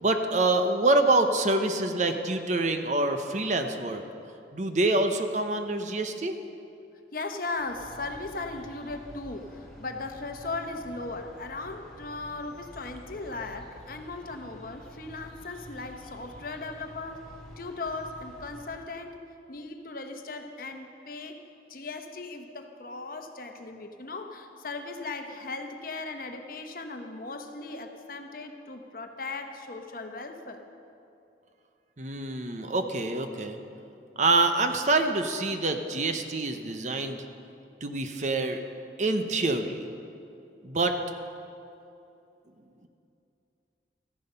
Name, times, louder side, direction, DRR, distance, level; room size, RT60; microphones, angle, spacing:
voice 1, 0.0-4.0 4.5-6.4 32.0-33.6 34.2-37.2 37.8-38.6 39.0-39.9 40.6-41.0, right 2 dB, 40° right, 7 dB, 0.7 m, -26 dB
voice 2, 7.1-17.2 17.6-19.2 19.5-21.4 21.7-30.6, left 3 dB, 50° left, 5 dB, 0.9 m, -37 dB
sound 1, 7.5-18.9, equal, 5° left, 2.9 m, -49 dB
14.0 x 10.5 x 5.5 m, 2.7 s
head